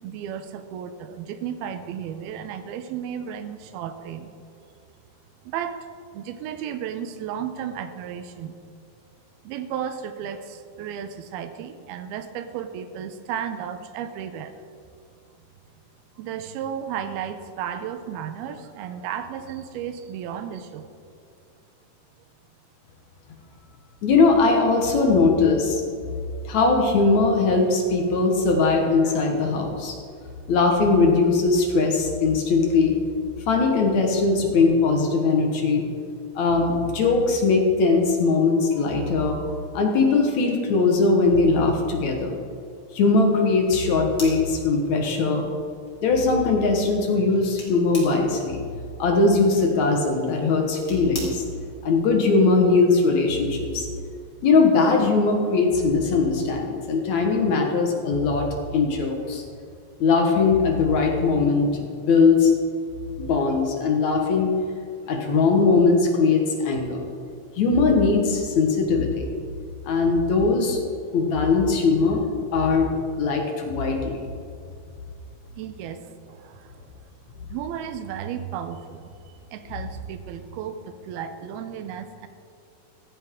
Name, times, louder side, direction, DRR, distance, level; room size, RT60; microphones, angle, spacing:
voice 1, 0.0-4.3 5.4-5.9 6.1-8.5 9.4-14.5 16.2-20.9 75.6-76.0 76.3-77.1 77.4-82.3, right 8 dB, 75° right, 9 dB, 2.5 m, -34 dB
voice 2, 24.0-25.8 26.5-30.0 30.5-32.9 33.5-35.8 36.4-39.4 39.7-42.4 42.9-45.4 46.0-48.6 49.0-51.4 51.8-53.9 54.4-58.5 58.7-59.4 60.0-62.5 63.2-64.5 65.1-67.0 67.6-69.3 69.8-70.8 71.1-72.2 72.5-72.9 73.2-74.2, left 4 dB, 60° left, 1 dB, 1.9 m, -20 dB
sound 1, 43.7-51.8, left 2 dB, 25° left, 3.3 m, -44 dB
15.5 x 15.0 x 3.7 m, 2.4 s
omnidirectional pair, 5.0 m